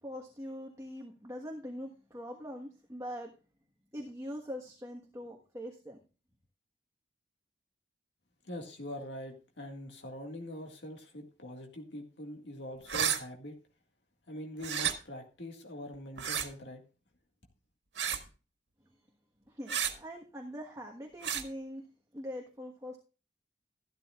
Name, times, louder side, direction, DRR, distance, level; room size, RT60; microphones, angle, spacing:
voice 1, 0.0-3.4 3.9-6.0 19.5-21.9 22.1-23.0, equal, 15° right, 1.4 m, -43 dB
voice 2, 8.4-13.6 14.3-16.8, left 1 dB, 80° left, 1.9 m, -43 dB
sound 1, 12.9-13.2 14.6-14.9 16.2-16.5 18.0-18.3 19.7-19.9 21.2-21.4, right 8 dB, 85° right, 1.6 m, -31 dB
13.0 x 12.5 x 2.4 m
head